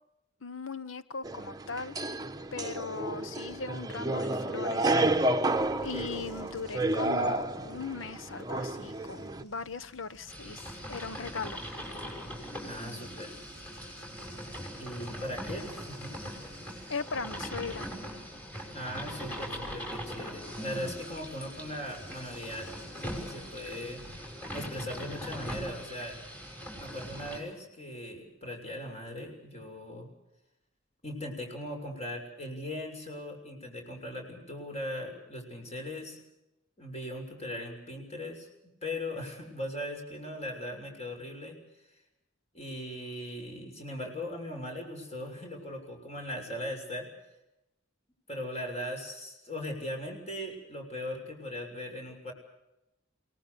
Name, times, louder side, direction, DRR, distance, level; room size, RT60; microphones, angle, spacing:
voice 1, 0.4-2.0 2.5-5.4 5.8-11.7 16.9-17.9, left 4 dB, 80° left, 14 dB, 1.2 m, -39 dB
sound 1, 1.2-9.4, right 2 dB, 20° right, 1.0 m, -31 dB
sound 2, 5.6-24.2, equal, 60° left, 6.2 m, -56 dB
sound 3, 10.3-27.4, equal, 10° left, 6.4 m, -41 dB
voice 2, 12.7-13.3 14.8-16.1 18.7-22.7 23.0-24.0 24.5-26.2 26.8-30.1 31.0-36.2 36.8-38.5 38.8-41.6 42.5-47.1 48.3-52.3, left 1 dB, 35° left, 3 dB, 6.8 m, -39 dB
29.0 x 19.5 x 6.9 m, 0.89 s
head